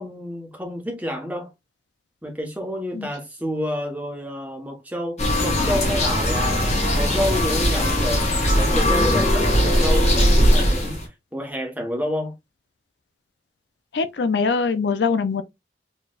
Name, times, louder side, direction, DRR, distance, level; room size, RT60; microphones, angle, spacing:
voice 1, 0.0-1.5 2.2-12.4, equal, 10° right, 1.2 m, -29 dB
sound 1, 5.2-11.1, equal, 40° left, 1.7 m, -19 dB
voice 2, 13.9-15.4, left 5 dB, 80° left, 0.5 m, -22 dB
4.2 x 3.3 x 2.4 m
head